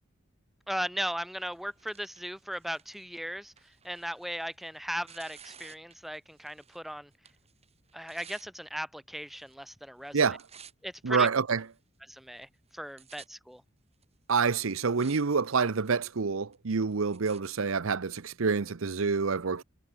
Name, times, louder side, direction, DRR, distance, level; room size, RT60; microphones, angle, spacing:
voice 1, 0.7-7.1 7.9-10.2 10.8-11.3 12.0-13.6, equal, ahead, 1.6 m, -37 dB
Tearing, 1.4-6.9 7.1-8.5 9.2-9.7 10.0-11.0 11.6-11.7 12.4-12.5 12.7-13.3 14.0-14.1 14.6-15.2 15.5-16.0 16.5-17.4 18.2-18.3, right 7 dB, 30° right, 6.7 m, -54 dB
voice 2, 11.0-11.6 14.3-19.6, right 5 dB, 75° right, 0.8 m, -27 dB
head